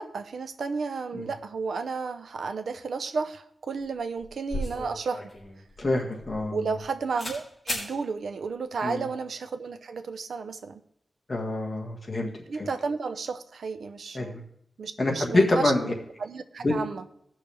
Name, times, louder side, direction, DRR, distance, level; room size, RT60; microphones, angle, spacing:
voice 1, 0.0-5.3 6.5-10.8 12.5-14.4 14.8-15.7 16.2-17.0, right 4 dB, 80° right, 8 dB, 0.6 m, -32 dB
sound 1, 3.8-3.9 4.2-6.8 7.2-7.4 7.7-7.9, left 1 dB, 15° left, 3.4 m, -35 dB
voice 2, 5.8-6.7 8.8-9.1 11.3-12.3 12.6-12.7 14.1-14.4 15.0-15.9 16.6-16.7, left 2 dB, 30° left, 0 dB, 1.6 m, -26 dB
17.5 x 6.2 x 3.4 m, 0.74 s
wide cardioid pair, 145°, 0 cm